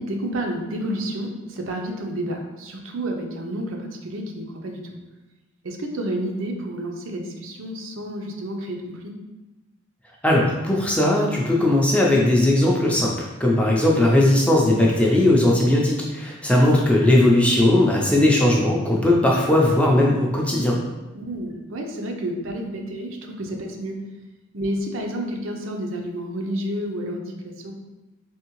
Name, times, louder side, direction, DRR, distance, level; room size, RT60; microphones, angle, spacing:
voice 1, 0.0-5.0 5.6-9.1 21.1-24.0 24.5-27.7, right 1 dB, 75° right, 2 dB, 0.6 m, -30 dB
voice 2, 10.2-20.8, left 1 dB, 5° left, -2 dB, 0.4 m, -18 dB
3.5 x 3.4 x 3.0 m, 1.1 s
head